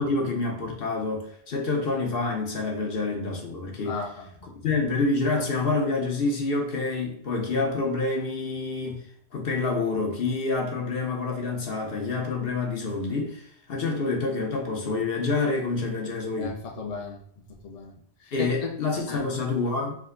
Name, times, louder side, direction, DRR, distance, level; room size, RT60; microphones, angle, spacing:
voice 1, 0.0-4.0 4.4-9.0 9.3-16.6 18.3-20.0, left 3 dB, 65° left, 2 dB, 1.1 m, -27 dB
voice 2, 3.9-4.5 16.4-17.2 17.6-17.9 18.2-18.7 19.1-19.2, left 4 dB, 40° left, 1 dB, 0.7 m, -35 dB
5.0 x 2.3 x 3.7 m, 0.65 s
omnidirectional pair, 1.1 m